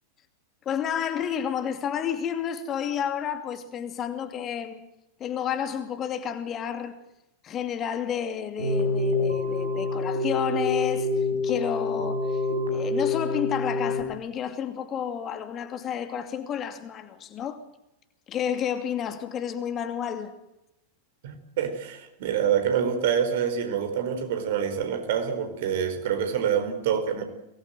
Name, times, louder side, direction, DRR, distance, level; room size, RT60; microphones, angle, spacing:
voice 1, 0.6-4.8 5.2-7.0 7.4-12.4 12.7-17.6 18.3-20.3, left 8 dB, 30° left, 2.6 m, -31 dB
Keyboard (musical), 8.6-14.0, left 3 dB, 75° right, 6.2 m, -26 dB
voice 2, 21.2-27.2, right 8 dB, 55° right, 4.8 m, -26 dB
24.0 x 19.5 x 7.8 m
figure-of-eight pair, 90°, 0 cm